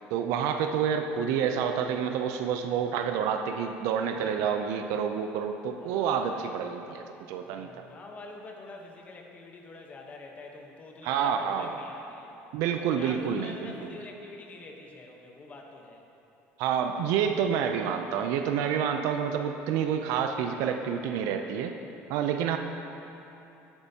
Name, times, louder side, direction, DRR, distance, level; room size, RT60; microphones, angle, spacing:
voice 1, 0.1-7.8 11.0-11.7 12.5-13.7 16.6-21.8 22.1-22.6, right 7 dB, 75° right, 6 dB, 0.4 m, -28 dB
voice 2, 4.2-4.5 5.8-6.6 7.4-12.3 12.9-16.1, left 3 dB, 30° left, 1 dB, 1.0 m, -46 dB
10.0 x 8.1 x 2.8 m, 3.0 s
cardioid pair, 130°, 5 cm